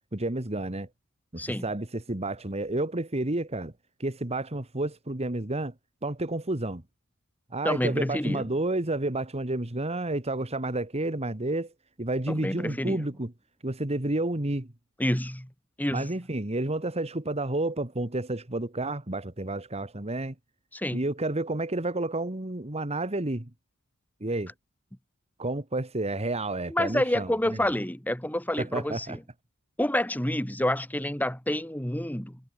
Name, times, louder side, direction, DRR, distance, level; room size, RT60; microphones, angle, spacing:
voice 1, 0.1-0.9 1.3-3.7 4.0-5.7 6.0-6.8 7.5-11.7 12.0-13.3 13.6-14.7 15.9-20.4 20.9-23.5 24.2-24.5 25.4-27.6 28.6-29.2, right 2 dB, 30° right, 1.9 m, -30 dB
voice 2, 7.6-8.4 12.3-13.0 15.0-15.5 15.8-16.1 20.7-21.0 26.7-29.2 29.8-32.4, left 1 dB, 10° left, 2.8 m, -28 dB
head